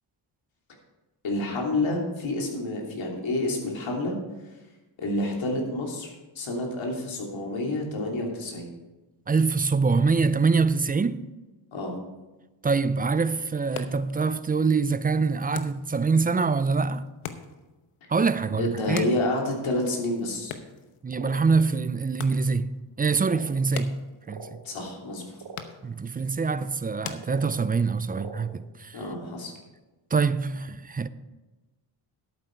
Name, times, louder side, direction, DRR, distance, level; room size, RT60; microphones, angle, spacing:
voice 1, 1.2-4.1 5.0-8.7 11.7-11.9 18.6-20.5 24.6-25.4 28.9-29.5, left 2 dB, 70° left, 3.0 m, -29 dB
voice 2, 9.3-11.2 12.6-17.0 18.1-19.1 21.0-24.0 24.3-24.6 25.8-29.0 30.1-31.1, right 4 dB, 20° right, 0.4 m, -25 dB
sound 1, 13.5-28.0, left 8 dB, 85° left, 1.0 m, -45 dB
sound 2, 21.1-21.4 22.2-22.3 23.2-23.5 24.2-24.5 25.4-25.6 27.2-27.5 28.1-28.4, right 4 dB, 60° right, 4.2 m, -41 dB
11.5 x 8.8 x 4.6 m
cardioid pair, 85°, 49 cm